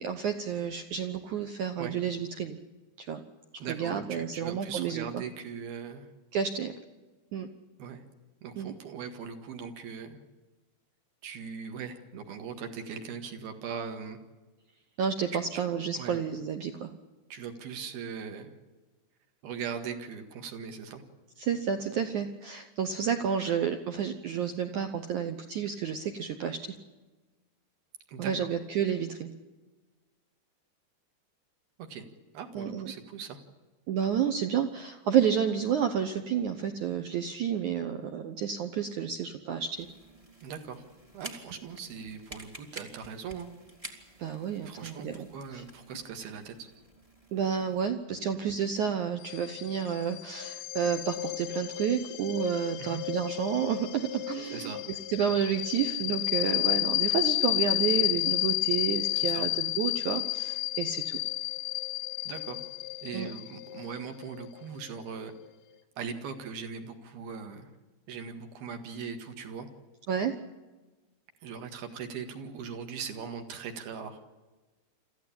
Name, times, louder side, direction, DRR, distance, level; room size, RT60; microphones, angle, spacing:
voice 1, 0.0-2.6 3.0-3.2 3.7-5.2 6.3-6.7 7.3-7.5 8.6-8.7 15.0-16.9 21.4-26.7 28.2-29.3 32.5-32.9 33.9-39.9 44.2-45.3 45.5-45.6 47.3-54.7 55.1-61.2 63.1-63.3 70.1-70.3, right 8 dB, 80° right, 7 dB, 1.7 m, -30 dB
voice 2, 3.6-6.1 7.8-8.0 8.4-10.2 11.2-14.2 15.3-15.6 16.0-16.2 17.3-18.5 19.4-21.0 28.1-28.5 31.9-32.1 32.3-33.4 40.4-40.8 41.1-43.5 44.7-46.7 52.8-53.0 54.5-54.8 59.1-59.5 62.3-62.6 63.0-65.3 66.0-67.7 68.1-69.7 71.4-74.3, right 6 dB, 65° right, 6 dB, 3.5 m, -40 dB
sound 1, 39.7-47.8, right 1 dB, 20° right, 0.9 m, -50 dB
sound 2, 49.2-65.5, left 20 dB, 70° left, 2.0 m, -32 dB
26.5 x 14.5 x 8.7 m, 1.2 s
omnidirectional pair, 5.1 m